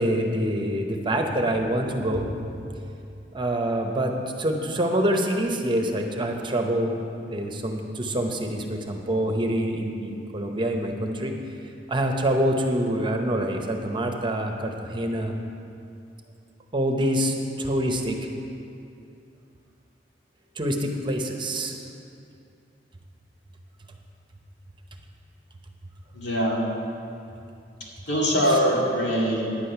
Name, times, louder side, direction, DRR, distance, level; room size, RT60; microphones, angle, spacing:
voice 1, 0.0-2.5 3.3-4.1 4.4-6.9 7.2-11.3 11.9-15.4 16.7-18.3 20.6-21.8, right 1 dB, 30° right, 3 dB, 0.8 m, -26 dB
voice 2, 26.1-26.7 28.1-29.4, equal, 85° left, -4 dB, 2.4 m, -22 dB
10.0 x 8.5 x 5.7 m, 2.6 s
head